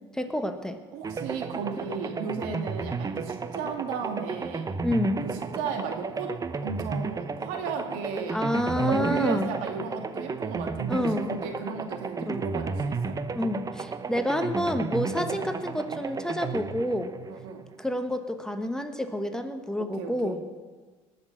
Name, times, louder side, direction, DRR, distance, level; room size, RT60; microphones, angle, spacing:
voice 1, 0.1-0.8 4.8-5.2 8.3-9.5 10.9-11.3 12.3-12.5 13.3-17.1 17.8-20.4, left 1 dB, 5° left, 7 dB, 1.3 m, -28 dB
voice 2, 0.9-4.7 5.2-6.3 6.6-8.4 8.8-13.2 15.2-15.4 17.4-17.6 19.8-20.4, right 5 dB, 80° right, 4 dB, 2.2 m, -34 dB
sound 1, 1.0-18.0, right 4 dB, 25° right, 0.8 m, -33 dB
19.5 x 6.6 x 7.2 m, 1.4 s
supercardioid pair, 90°, 14 cm